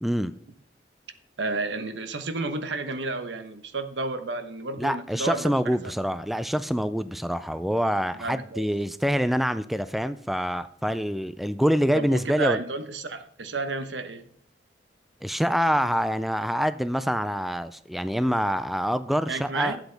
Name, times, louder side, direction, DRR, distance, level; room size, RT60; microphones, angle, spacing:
voice 1, 0.0-0.3 4.8-12.6 15.2-19.8, equal, ahead, 12 dB, 0.3 m, -26 dB
voice 2, 1.4-5.8 8.1-8.6 11.9-14.2 19.3-19.8, right 3 dB, 80° right, 9 dB, 1.1 m, -31 dB
11.5 x 8.2 x 3.4 m, 0.65 s
head